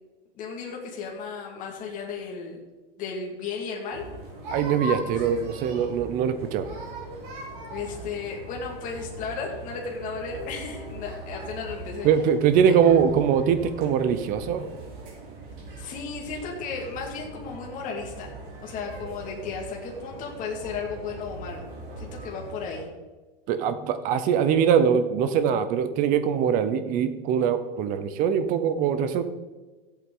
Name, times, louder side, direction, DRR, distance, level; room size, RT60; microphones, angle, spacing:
voice 1, 0.3-2.6 3.0-4.0 5.0-5.1 7.7-12.1 12.7-12.8 15.8-18.3 18.6-21.7 22.0-22.9, left 5 dB, 25° left, 0 dB, 1.9 m, -34 dB
sound 1, 3.9-22.8, right 2 dB, 55° right, 3.4 m, -40 dB
voice 2, 4.5-6.7 12.0-14.7 23.5-29.2, right 7 dB, 30° right, 11 dB, 0.7 m, -22 dB
13.5 x 8.3 x 3.8 m, 1.2 s
supercardioid pair, 155°, 29 cm